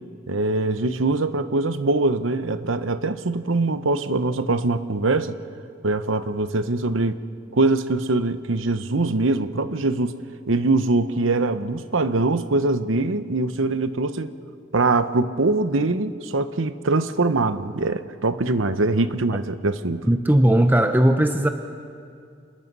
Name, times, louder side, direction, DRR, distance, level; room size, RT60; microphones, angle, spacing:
voice 1, 0.3-5.4 5.8-7.2 7.5-10.1 10.5-14.3 14.7-20.1, right 2 dB, 85° right, 11 dB, 1.0 m, -23 dB
voice 2, 20.0-21.5, right 1 dB, 10° right, 6 dB, 0.7 m, -17 dB
28.0 x 20.5 x 5.5 m, 2.3 s
head